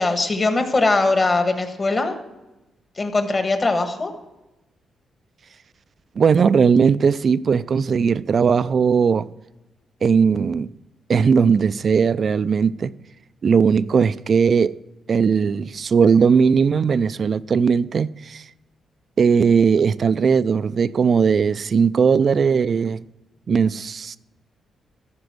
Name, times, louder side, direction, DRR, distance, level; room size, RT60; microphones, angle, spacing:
voice 1, 0.0-2.2 3.0-4.1, left 3 dB, 30° left, 1.5 m, -20 dB
voice 2, 6.2-9.3 10.0-10.7 11.1-12.9 13.4-14.8 15.1-18.4 19.2-23.0 23.5-24.2, right 6 dB, 45° right, 0.4 m, -18 dB
15.0 x 5.2 x 6.2 m
cardioid pair, 110°, 0 cm